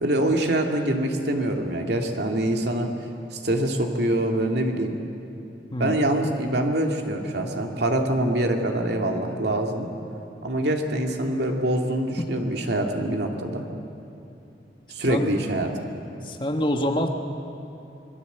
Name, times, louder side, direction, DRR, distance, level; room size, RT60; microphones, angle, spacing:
voice 1, 0.0-2.9 3.3-5.0 5.8-9.9 10.4-13.6 14.9-15.7, right 1 dB, 65° right, 2 dB, 2.4 m, -24 dB
voice 2, 16.2-17.1, left 1 dB, 25° left, 4 dB, 1.6 m, -26 dB
26.5 x 21.0 x 8.1 m, 2.7 s
head